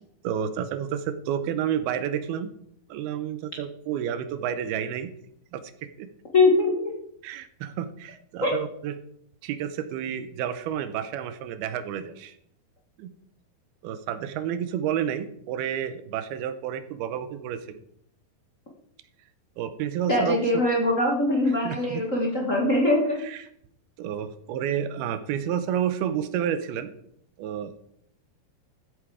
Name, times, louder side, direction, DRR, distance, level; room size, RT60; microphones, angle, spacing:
voice 1, 0.2-2.5 2.9-5.1 5.5-5.7 6.0-6.1 7.2-9.0 9.4-12.4 13.0-13.1 13.8-17.8 19.6-20.4 21.6-22.1 23.2-23.5 24.0-26.9 27.4-27.7, right 9 dB, 80° right, 12 dB, 2.7 m, -30 dB
voice 2, 6.3-6.9 8.4-8.6 20.1-23.2, left 2 dB, 55° left, -1 dB, 0.8 m, -22 dB
14.0 x 8.2 x 4.9 m, 0.70 s
omnidirectional pair, 4.6 m